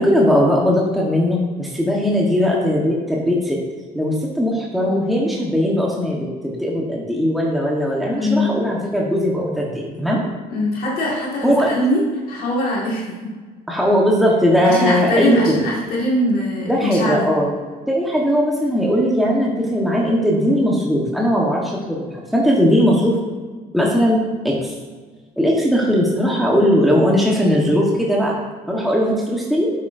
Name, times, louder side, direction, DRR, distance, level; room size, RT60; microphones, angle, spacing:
voice 1, 0.0-3.6 3.9-10.2 11.4-11.7 13.7-15.4 16.7-17.5 17.9-23.1 23.7-24.2 24.4-24.7 25.4-28.4 28.7-29.7, equal, ahead, -3 dB, 1.3 m, -18 dB
voice 2, 8.2-8.6 10.5-13.3 14.6-17.3, left 1 dB, 60° left, -5 dB, 2.1 m, -21 dB
8.8 x 7.5 x 2.7 m, 1.4 s
cardioid pair, 110°, 17 cm